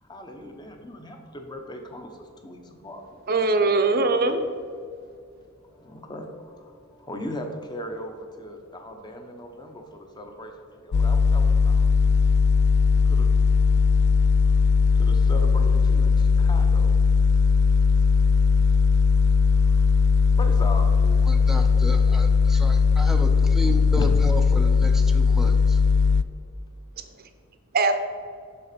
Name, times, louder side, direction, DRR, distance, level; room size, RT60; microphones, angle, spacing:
voice 1, 0.0-3.1 5.7-12.0 12.9-13.4 14.9-16.9 19.5-19.9 20.4-21.2 23.7-23.8, left 1 dB, 20° left, 4 dB, 0.9 m, -39 dB
voice 2, 3.3-4.5 27.7-27.9, right 3 dB, 45° right, 8 dB, 0.7 m, -21 dB
sound 1, 10.9-26.2, left 5 dB, 55° left, 0.3 m, -19 dB
voice 3, 21.2-25.8 27.8-27.9, equal, ahead, 4 dB, 0.5 m, -33 dB
7.0 x 6.0 x 5.2 m, 2.3 s
head